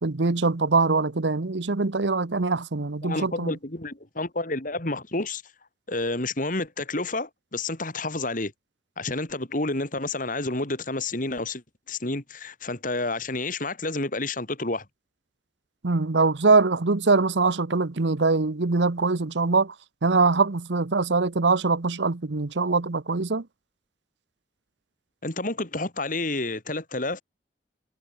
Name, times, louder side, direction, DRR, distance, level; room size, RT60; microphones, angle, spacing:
voice 1, 0.0-3.5 15.8-19.7 20.0-23.4, right 3 dB, 75° right, 1.0 m, -23 dB
voice 2, 3.0-5.4 5.9-8.5 9.0-14.8 25.2-27.2, left 2 dB, 45° left, 3.1 m, -30 dB
head